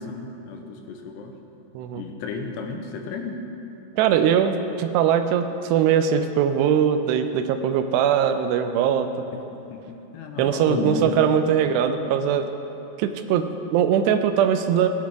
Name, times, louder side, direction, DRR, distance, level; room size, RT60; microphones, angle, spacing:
voice 1, 0.0-1.3 1.9-3.4 9.3-11.1, left 4 dB, 80° left, 4 dB, 2.9 m, -33 dB
voice 2, 4.0-9.1 10.4-12.5 13.0-14.9, right 8 dB, 85° right, 8 dB, 2.7 m, -21 dB
18.5 x 9.4 x 3.5 m, 2.9 s
omnidirectional pair, 4.9 m